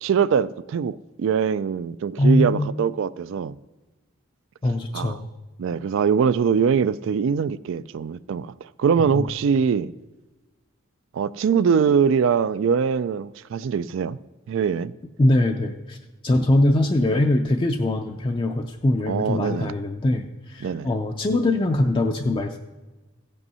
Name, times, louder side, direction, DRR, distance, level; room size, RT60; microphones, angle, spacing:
voice 1, 0.0-3.6 4.9-5.2 5.6-9.9 11.1-14.2 14.5-14.9 19.1-19.7 20.6-20.9, right 6 dB, 65° right, 0.3 m, -22 dB
voice 2, 2.2-2.7 4.6-5.3 9.2-9.3 15.2-16.0 16.2-22.6, left 1 dB, 25° left, 0.4 m, -22 dB
15.5 x 5.4 x 5.5 m
head